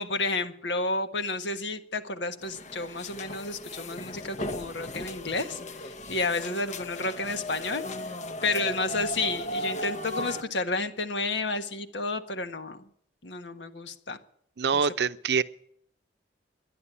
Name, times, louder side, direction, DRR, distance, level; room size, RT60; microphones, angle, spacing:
voice 1, 0.0-8.1 8.4-12.8 13.2-14.2 14.7-14.8, left 3 dB, 85° left, 1.4 m, -31 dB
sound 1, 2.4-10.4, left 1 dB, 45° left, 0.9 m, -36 dB
voice 2, 14.6-15.4, right 6 dB, 70° right, 0.6 m, -25 dB
11.0 x 11.0 x 9.8 m
head